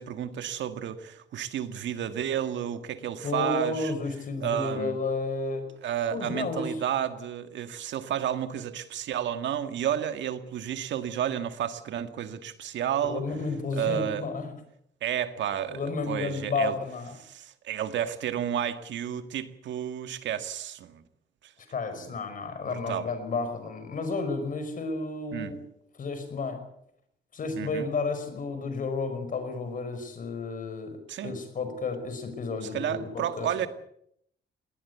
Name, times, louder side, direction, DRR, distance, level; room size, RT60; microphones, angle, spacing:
voice 1, 0.0-3.9 4.4-5.0 5.8-13.2 13.7-14.3 15.0-16.8 17.2-21.0 21.4-21.5 22.0-22.1 22.7-23.0 25.3-25.5 27.6-27.9 31.1-31.3 32.6-33.7, right 10 dB, 80° right, 10 dB, 1.8 m, -31 dB
voice 2, 3.2-5.7 6.1-6.8 13.0-14.5 15.7-17.1 21.7-25.6 26.0-26.6 27.3-33.7, left 3 dB, 45° left, 9 dB, 5.3 m, -32 dB
21.0 x 18.5 x 8.2 m, 0.73 s
cardioid pair, 140°, 19 cm